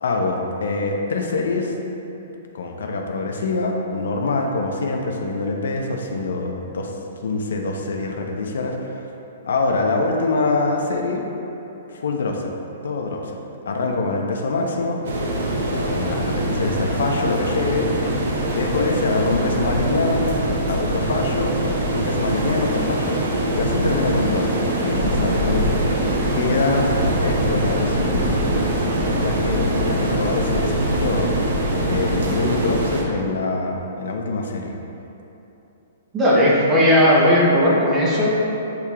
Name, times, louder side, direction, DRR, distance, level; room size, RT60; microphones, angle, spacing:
voice 1, 0.0-1.7 2.5-6.9 7.2-9.0 9.4-11.2 11.9-12.5 12.8-13.4 13.7-15.0 15.7-18.2 18.5-20.3 20.6-21.6 21.9-23.2 23.5-25.7 26.3-26.9 27.2-31.3 31.8-34.8, left 3 dB, 85° left, 2 dB, 0.5 m, -24 dB
sound 1, 15.0-33.0, right 1 dB, 70° right, 0.7 m, -23 dB
voice 2, 36.1-38.3, equal, 15° right, -6 dB, 0.8 m, -16 dB
8.0 x 2.8 x 2.4 m, 2.9 s
hypercardioid pair, 170°, 0 cm